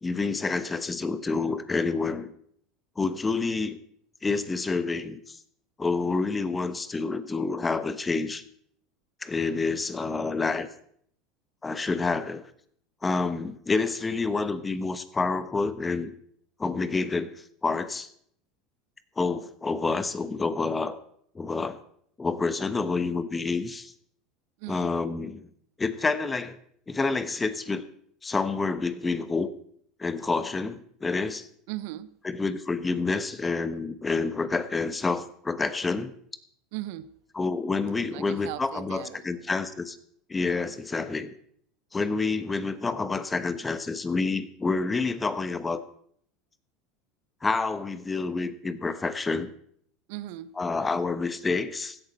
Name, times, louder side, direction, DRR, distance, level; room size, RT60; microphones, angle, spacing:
voice 1, 0.0-2.3 3.0-3.8 4.2-5.4 5.8-8.4 9.2-10.7 11.6-12.4 13.0-16.1 16.6-18.1 19.2-21.0 21.3-21.8 22.2-23.9 24.7-25.5 25.8-26.6 26.9-27.8 28.2-29.5 30.0-31.5 32.2-36.1 37.3-40.0 40.3-41.3 41.9-45.8 47.4-49.5 50.6-52.0, left 4 dB, 20° left, 1.1 m, -28 dB
voice 2, 24.6-25.0 31.7-32.1 36.7-37.1 38.1-39.5 50.1-50.5, right 15 dB, 65° right, 0.6 m, -38 dB
16.0 x 11.5 x 4.4 m
hypercardioid pair, 80°, 0 cm